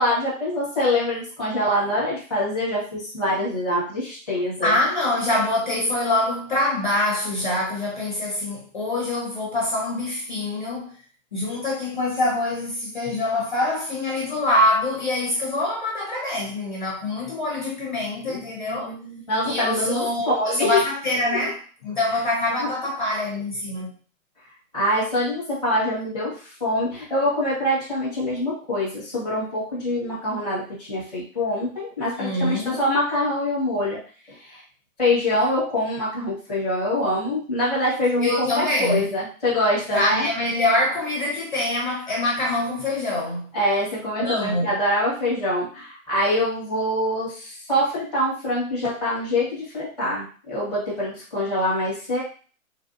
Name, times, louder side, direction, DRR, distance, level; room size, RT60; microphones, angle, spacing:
voice 1, 0.0-4.7 18.2-20.8 21.3-21.4 22.6-22.7 24.7-34.0 34.3-34.6 35.0-40.3 43.5-52.2, left 1 dB, 5° right, 0.9 m, -25 dB
voice 2, 4.6-11.0 11.3-18.9 19.4-24.0 32.1-32.8 38.2-39.2 39.9-43.6 44.2-44.8, left 1 dB, 35° left, 0.6 m, -25 dB
3.3 x 2.6 x 2.5 m
hypercardioid pair, 180°, 42 cm